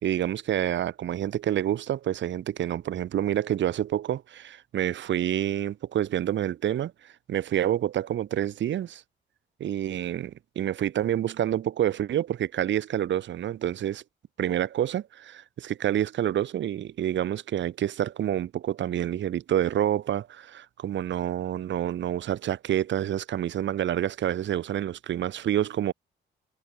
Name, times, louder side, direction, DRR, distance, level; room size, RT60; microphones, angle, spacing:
voice 1, 0.0-9.0 9.6-14.0 14.4-25.9, right 11 dB, 65° right, 2.2 m, -28 dB
cardioid pair, 90°, 20 cm